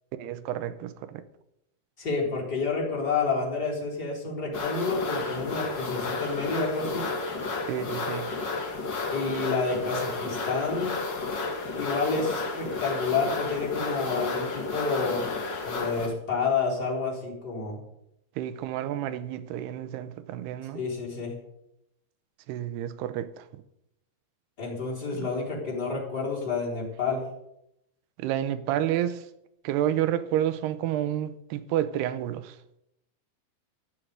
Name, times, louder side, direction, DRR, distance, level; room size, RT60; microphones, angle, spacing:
voice 1, 0.1-1.2 7.7-8.3 18.4-20.8 22.5-23.5 25.2-25.3 28.2-29.2 29.6-32.6, right 11 dB, 90° right, 2.9 m, -30 dB
voice 2, 2.0-7.1 9.1-10.9 11.8-15.2 15.6-17.8 20.7-21.3 24.6-27.2, left 4 dB, 25° left, 4.2 m, -29 dB
sound 1, 4.5-16.1, left 3 dB, 40° left, 1.7 m, -32 dB
15.0 x 6.4 x 9.4 m
omnidirectional pair, 4.5 m